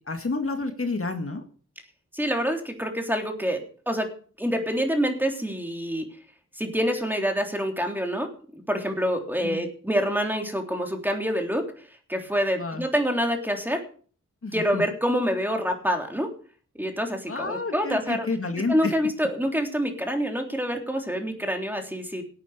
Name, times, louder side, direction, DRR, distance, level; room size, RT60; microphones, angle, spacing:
voice 1, 0.1-1.4 9.4-9.6 12.6-12.8 14.4-14.8 17.3-18.9, left 3 dB, 45° left, 5 dB, 2.0 m, -29 dB
voice 2, 2.1-4.1 4.4-6.1 6.5-8.3 8.7-13.8 14.5-16.3 16.8-18.3 18.7-22.2, equal, 5° right, 3 dB, 3.4 m, -26 dB
17.5 x 9.1 x 5.0 m, 0.43 s
wide cardioid pair, 70°, 31 cm